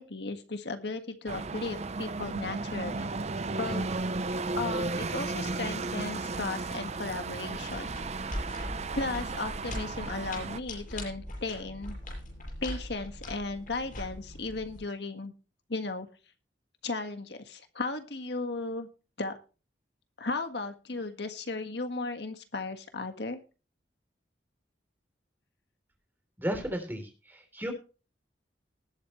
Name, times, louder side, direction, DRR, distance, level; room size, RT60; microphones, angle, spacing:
voice 1, 0.0-3.1 3.6-3.9 4.6-7.9 8.9-12.0 12.6-15.3 15.7-16.1 16.8-18.9 19.2-19.4 20.2-23.4, left 3 dB, 65° left, 7 dB, 1.6 m, -35 dB
sound 1, 1.3-10.6, right 3 dB, 40° right, 0.7 m, -34 dB
sound 2, 7.5-14.8, left 1 dB, 50° left, 7.2 m, -41 dB
voice 2, 26.4-27.7, equal, 10° right, 5 dB, 3.4 m, -34 dB
19.5 x 8.3 x 3.1 m, 0.33 s
head